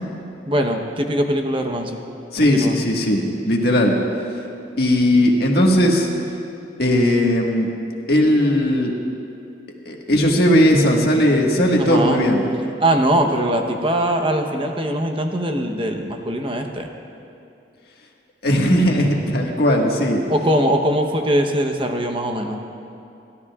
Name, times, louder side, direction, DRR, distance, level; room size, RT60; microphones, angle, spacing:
voice 1, 0.5-2.0 2.4-2.8 11.8-12.2 12.8-16.9 20.3-22.6, right 1 dB, 30° right, 4 dB, 0.9 m, -21 dB
voice 2, 2.3-4.0 4.8-6.1 6.8-7.7 8.1-8.9 9.8-12.4 18.4-20.2, equal, 60° left, -1 dB, 1.7 m, -17 dB
30.0 x 13.0 x 2.4 m, 2.6 s
head